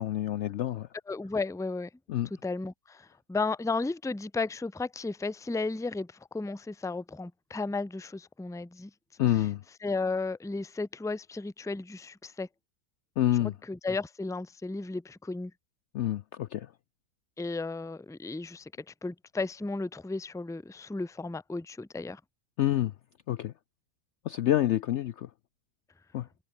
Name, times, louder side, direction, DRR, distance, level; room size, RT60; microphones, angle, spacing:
voice 1, 0.0-0.9 2.1-2.3 9.2-9.6 13.2-13.5 15.9-16.7 22.6-22.9 23.3-23.5 24.2-25.3 26.1-26.3, left 13 dB, 70° left, 0.7 m, -27 dB
voice 2, 1.1-1.9 2.4-8.9 9.8-12.5 13.4-15.5 17.4-18.7 19.0-22.2, left 3 dB, 5° left, 0.7 m, -34 dB
omnidirectional pair, 1.6 m